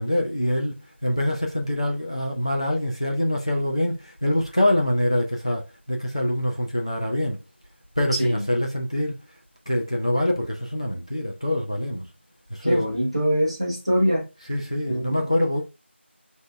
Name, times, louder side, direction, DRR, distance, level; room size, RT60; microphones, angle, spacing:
voice 1, 0.0-7.4 8.0-9.2 9.7-12.1 12.5-12.8 14.5-15.6, left 1 dB, 30° left, 0.4 m, -25 dB
voice 2, 12.6-14.3 14.9-15.2, equal, 25° right, 0.9 m, -23 dB
6.0 x 2.6 x 2.2 m
figure-of-eight pair, 175°, 7 cm